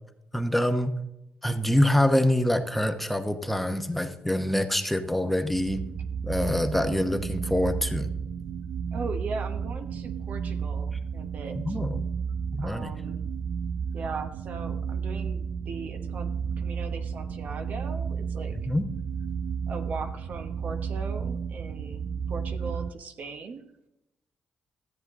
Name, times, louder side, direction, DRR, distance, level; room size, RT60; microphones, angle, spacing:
voice 1, 0.3-0.9 1.4-5.8 6.2-8.1 11.6-12.0 12.5-12.9 18.7-18.9, left 1 dB, 5° left, 7 dB, 0.9 m, -25 dB
sound 1, 5.5-22.9, right 6 dB, 75° right, 0.4 m, -32 dB
voice 2, 8.9-11.8 12.6-13.3 13.9-18.5 19.7-23.6, right 4 dB, 60° right, 7 dB, 1.1 m, -39 dB
13.5 x 7.9 x 3.7 m, 0.88 s
cardioid pair, 80°, 3 cm